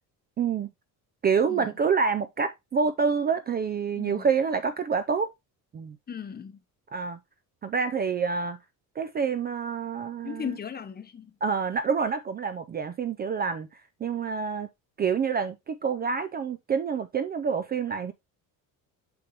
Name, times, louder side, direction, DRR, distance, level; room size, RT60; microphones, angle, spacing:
voice 1, 0.4-0.7 1.2-5.3 5.7-6.0 6.9-7.2 7.6-8.6 9.0-10.5 11.4-13.7 14.0-14.7 15.0-18.1, right 6 dB, 25° right, 0.4 m, -27 dB
voice 2, 4.0-4.3 6.1-6.6 10.2-11.3, left 7 dB, 25° left, 0.9 m, -37 dB
7.0 x 5.2 x 2.8 m
cardioid pair, 145°, 37 cm